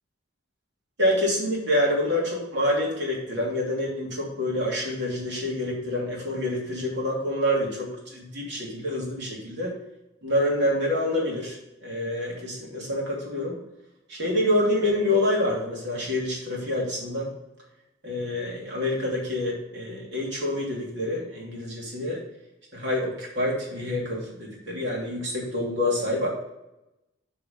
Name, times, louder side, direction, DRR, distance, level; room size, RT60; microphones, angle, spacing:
voice 1, 1.0-9.7 10.2-11.6 11.8-13.6 14.1-17.3 18.0-22.2 22.7-26.3, left 1 dB, 60° right, -3 dB, 2.9 m, -27 dB
8.8 x 4.7 x 5.4 m, 0.91 s
head